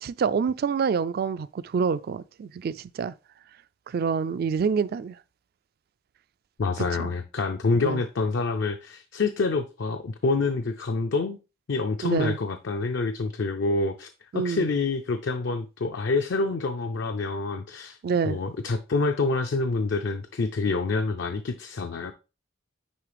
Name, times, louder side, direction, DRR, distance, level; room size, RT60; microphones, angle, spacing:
voice 1, 0.0-3.1 3.9-5.2 6.8-7.1 7.8-8.0 12.0-12.4 14.3-14.6 18.0-18.4, right 6 dB, 50° right, 0.3 m, -27 dB
voice 2, 6.6-11.4 11.7-14.1 14.3-18.0 18.2-22.1, left 3 dB, 60° left, 0.5 m, -27 dB
9.5 x 3.2 x 3.3 m
head